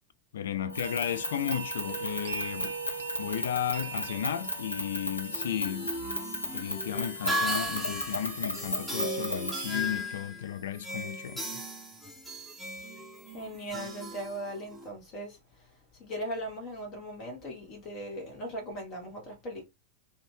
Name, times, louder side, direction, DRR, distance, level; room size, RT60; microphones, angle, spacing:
voice 1, 0.3-2.8 3.2-5.9 6.5-11.4, left 10 dB, 60° left, 0.3 m, -34 dB
sound 1, 0.6-6.2, right 7 dB, 60° right, 0.6 m, -41 dB
sound 2, 0.7-9.9, left 2 dB, 80° left, 0.7 m, -36 dB
sound 3, 5.3-14.9, equal, ahead, 0.8 m, -36 dB
voice 2, 13.3-15.7 16.0-19.6, equal, 35° left, 1.0 m, -39 dB
2.6 x 2.2 x 3.1 m
figure-of-eight pair, 90°, 0 cm